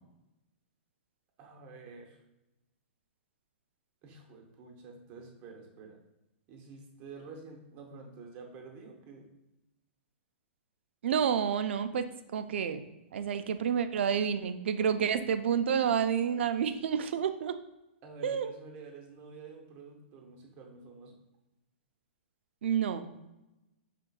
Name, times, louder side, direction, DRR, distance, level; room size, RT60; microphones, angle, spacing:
voice 1, 1.4-2.2 4.0-6.0 6.5-9.3 13.4-13.5 14.9-15.0 18.0-21.2, right 4 dB, 25° right, 2 dB, 0.7 m, -49 dB
voice 2, 11.0-12.1 12.3-12.8 13.1-17.6 18.2-18.5 22.6-23.1, right 7 dB, 70° right, 10 dB, 0.4 m, -29 dB
5.2 x 3.7 x 2.3 m, 0.96 s
hypercardioid pair, 165°, 6 cm